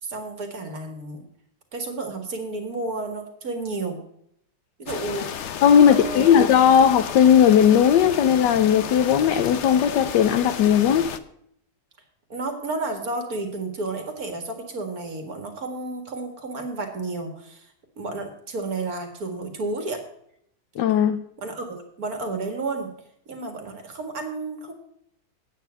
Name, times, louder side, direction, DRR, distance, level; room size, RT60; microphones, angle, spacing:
voice 1, 0.0-1.2 1.7-4.0 4.8-5.3 5.8-6.4 12.3-20.0 21.4-22.9 23.3-24.7, right 3 dB, 55° right, 5 dB, 2.3 m, -31 dB
sound 1, 4.9-11.2, left 8 dB, 60° left, 0.8 m, -33 dB
voice 2, 5.6-11.1 20.8-21.2, left 8 dB, 75° left, 8 dB, 1.4 m, -17 dB
9.4 x 8.8 x 5.7 m, 0.72 s
omnidirectional pair, 1.9 m